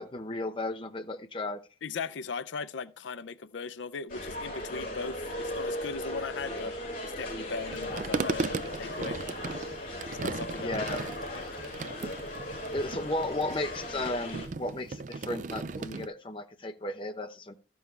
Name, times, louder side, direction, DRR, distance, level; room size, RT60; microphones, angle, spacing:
voice 1, 0.0-1.6 10.6-11.0 12.7-17.6, left 2 dB, 30° left, 0.7 m, -34 dB
voice 2, 1.8-6.7 7.0-9.2 10.2-10.9 11.3-11.4, left 5 dB, 90° left, 0.5 m, -38 dB
sound 1, 4.1-14.5, left 1 dB, 50° left, 6.2 m, -37 dB
sound 2, 7.7-16.1, right 3 dB, 45° right, 0.4 m, -37 dB
13.0 x 7.0 x 3.2 m
head